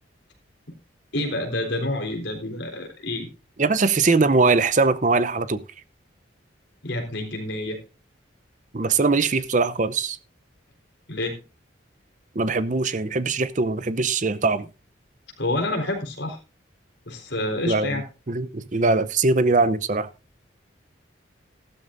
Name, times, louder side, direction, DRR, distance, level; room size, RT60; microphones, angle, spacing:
voice 1, 1.1-3.3 6.8-7.8 11.1-11.4 15.4-16.4 17.1-18.0, left 1 dB, 65° left, 4.0 m, -28 dB
voice 2, 3.6-5.6 8.7-10.2 12.3-14.7 17.7-18.0 18.3-20.1, right 3 dB, 40° right, 0.7 m, -21 dB
14.5 x 12.5 x 2.6 m
head